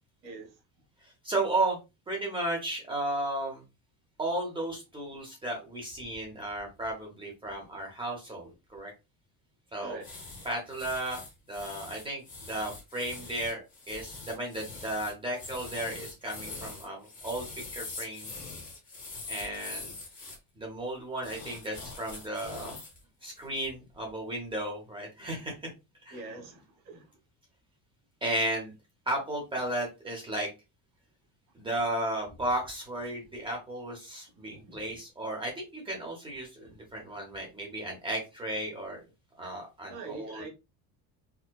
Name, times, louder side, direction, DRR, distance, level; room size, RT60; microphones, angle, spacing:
voice 1, 0.2-0.5 9.8-10.1 26.1-27.1 34.5-34.8 39.9-40.5, right 3 dB, 75° right, 1.9 m, -43 dB
voice 2, 1.2-1.8 2.1-3.6 4.2-8.9 9.7-10.0 10.4-11.2 11.5-13.6 13.9-17.4 17.7-18.3 19.3-19.9 20.6-22.7 23.2-25.5 26.0-26.2 28.2-28.7 29.1-30.5 31.5-39.0 39.4-40.4, right 1 dB, 15° right, 0.7 m, -34 dB
sound 1, 10.0-20.4 21.2-23.0 23.4-23.6, left 3 dB, 20° left, 0.9 m, -43 dB
4.5 x 2.2 x 2.2 m
cardioid pair, 180°, 39 cm